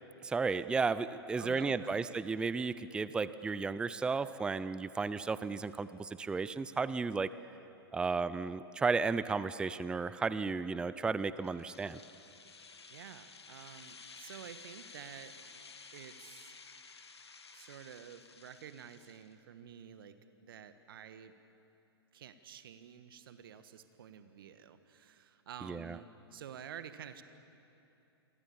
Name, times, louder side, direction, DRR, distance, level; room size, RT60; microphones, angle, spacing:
voice 1, 0.2-7.3 7.9-12.0 25.6-26.0, right 4 dB, 5° right, 15 dB, 0.5 m, -34 dB
voice 2, 1.4-2.1 12.9-15.3 15.9-16.6 17.5-20.2 20.4-21.3 22.1-27.2, right 9 dB, 55° right, 11 dB, 1.7 m, -50 dB
sound 1, 11.4-19.3, left 4 dB, 75° left, 1.8 m, -54 dB
28.5 x 23.5 x 7.2 m, 2.8 s
figure-of-eight pair, 110°, 14 cm